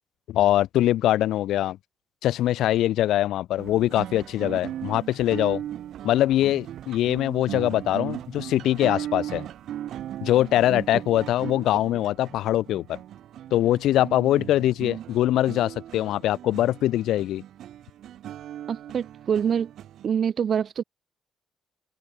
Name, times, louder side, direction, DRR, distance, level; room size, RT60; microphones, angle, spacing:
voice 1, 0.3-1.8 2.2-5.6 6.0-9.4 10.2-13.0 13.5-17.4, left 13 dB, 75° left, 6.9 m, -23 dB
sound 1, 3.6-20.1, right 11 dB, 65° right, 6.8 m, -38 dB
voice 2, 10.7-11.0 18.7-19.7 20.0-20.8, right 7 dB, 45° right, 6.2 m, -26 dB
open air
cardioid pair, 145°, 0 cm